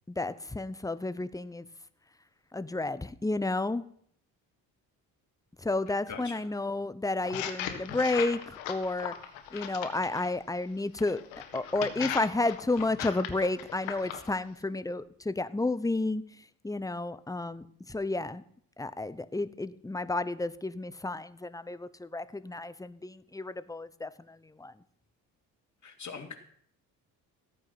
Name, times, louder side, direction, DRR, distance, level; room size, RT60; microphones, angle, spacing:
voice 1, 0.1-1.7 2.5-3.8 5.6-9.1 9.5-11.2 11.5-18.4 18.8-24.7, left 2 dB, 5° left, 14 dB, 0.9 m, -31 dB
voice 2, 6.1-6.4 25.8-26.3, left 5 dB, 35° left, 3 dB, 3.0 m, -41 dB
sound 1, 7.2-10.3 11.0-14.3, left 10 dB, 70° left, 1.6 m, -38 dB
14.5 x 9.0 x 5.9 m, 0.62 s
hypercardioid pair, 50°, 48 cm